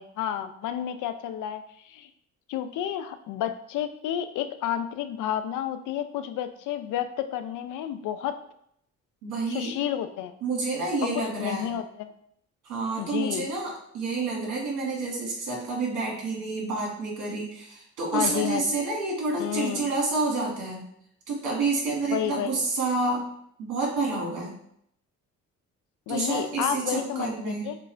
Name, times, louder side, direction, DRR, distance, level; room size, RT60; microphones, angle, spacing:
voice 1, 0.0-2.1 2.5-8.4 9.5-10.3 11.0-12.1 13.0-13.5 18.1-18.6 19.4-19.8 22.1-22.5 26.1-27.8, left 10 dB, 80° left, 10 dB, 0.5 m, -31 dB
voice 2, 9.2-9.7 10.4-11.7 12.6-20.8 21.3-23.2 23.6-24.5 26.1-27.7, right 3 dB, 90° right, -2 dB, 1.9 m, -29 dB
6.7 x 2.5 x 3.2 m, 0.71 s
cardioid pair, 90°, 30 cm